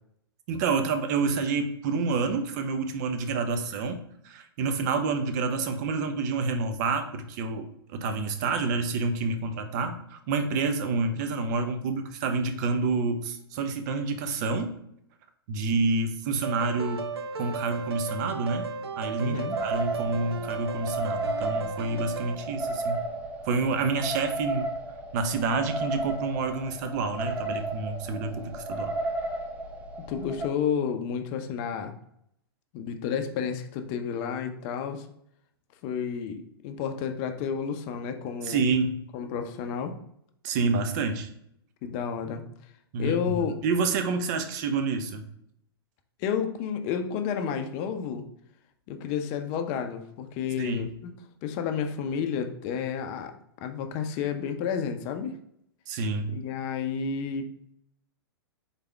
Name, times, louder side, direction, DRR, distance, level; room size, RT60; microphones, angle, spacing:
voice 1, 0.5-14.8 15.5-17.1 17.4-18.7 19.0-23.1 23.4-24.7 25.1-28.9 38.4-39.0 40.4-41.3 42.9-43.4 43.6-45.2 50.6-50.9 55.9-56.3, right 4 dB, 45° right, 8 dB, 0.7 m, -28 dB
sound 1, 16.4-22.4, right 5 dB, 80° right, 0.5 m, -35 dB
voice 2, 19.2-19.6 30.1-31.9 32.7-35.1 35.8-38.6 39.1-40.0 41.8-42.4 43.0-43.6 46.2-48.2 48.9-51.1 51.4-53.3 53.6-55.4 56.3-57.5, left 7 dB, 40° left, 6 dB, 0.6 m, -31 dB
sound 2, 19.5-30.5, right 2 dB, 10° right, 0.6 m, -34 dB
4.1 x 3.4 x 3.4 m, 0.73 s
figure-of-eight pair, 110°, 13 cm